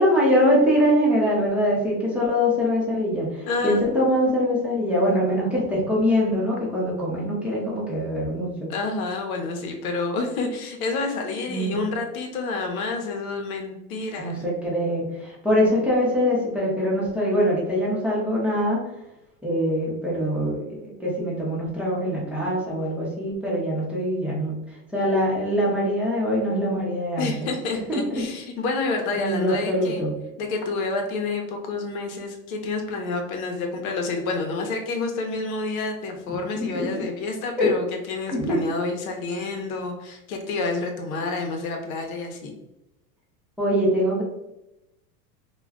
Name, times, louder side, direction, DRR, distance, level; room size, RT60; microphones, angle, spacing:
voice 1, 0.0-8.7 11.5-11.8 14.2-18.8 19.4-24.5 24.9-27.3 27.9-28.2 29.1-30.1 36.5-37.1 37.6-37.7 38.3-38.6 43.6-44.2, equal, 5° right, -7 dB, 0.7 m, -23 dB
voice 2, 3.5-3.9 8.7-14.4 27.2-30.0 30.4-42.5, left 3 dB, 85° left, 3 dB, 0.8 m, -29 dB
2.3 x 2.2 x 3.5 m, 0.90 s
supercardioid pair, 140°, 41 cm